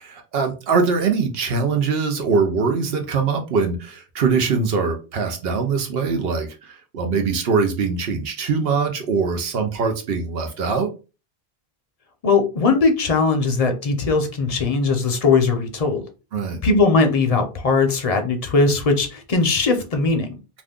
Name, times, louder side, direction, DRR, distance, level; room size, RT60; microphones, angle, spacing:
voice 1, 0.0-10.9 16.3-16.6, right 5 dB, 75° right, 4 dB, 0.9 m, -22 dB
voice 2, 12.2-16.0 16.6-20.3, left 4 dB, 45° left, 5 dB, 0.6 m, -19 dB
2.6 x 2.3 x 3.5 m, 0.31 s
omnidirectional pair, 1.0 m